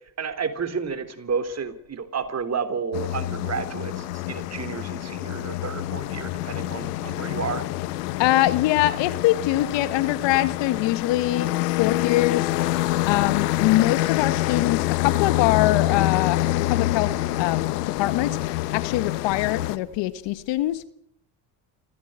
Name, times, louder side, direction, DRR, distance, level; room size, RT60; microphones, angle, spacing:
voice 1, 0.2-7.6, right 6 dB, 35° right, 10 dB, 3.6 m, -31 dB
sound 1, 2.9-19.8, left 16 dB, 90° left, 1.3 m, -26 dB
voice 2, 8.2-12.8 13.1-20.8, left 15 dB, 70° left, 14 dB, 1.7 m, -24 dB
26.5 x 16.0 x 8.9 m, 0.72 s
supercardioid pair, 80°, 45 cm